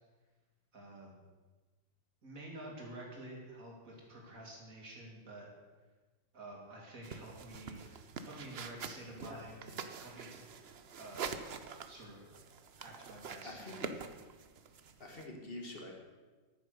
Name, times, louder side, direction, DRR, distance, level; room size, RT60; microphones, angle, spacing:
voice 1, 0.7-1.2 2.2-5.5 6.3-7.8 8.2-10.4 10.9-11.3 11.9-12.2 12.7-13.8, right 1 dB, 45° right, -2 dB, 3.2 m, -49 dB
sound 1, 7.0-15.2, right 6 dB, 70° right, 0.5 m, -46 dB
voice 2, 13.4-14.0 15.0-16.0, left 1 dB, 30° left, 1 dB, 1.9 m, -46 dB
10.5 x 9.3 x 6.6 m, 1.3 s
omnidirectional pair, 2.1 m